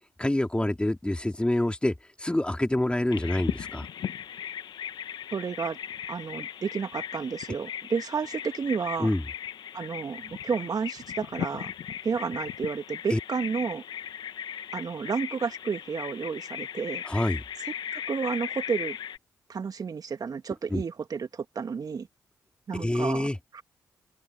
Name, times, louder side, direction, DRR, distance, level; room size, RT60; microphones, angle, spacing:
voice 1, 0.2-3.9 9.0-9.2 13.1-13.2 17.0-17.4 20.7-20.8 22.7-23.4, left 1 dB, 15° left, 3.0 m, -26 dB
Bird vocalization bird call bird song, 3.1-19.2, left 9 dB, 70° left, 1.2 m, -37 dB
voice 2, 5.3-5.8 6.1-9.1 9.7-11.7 12.0-13.8 14.7-17.0 17.9-19.0 19.5-22.1 22.7-23.3 23.5-23.6, right 5 dB, 55° right, 2.2 m, -31 dB
hypercardioid pair, 40°, 8 cm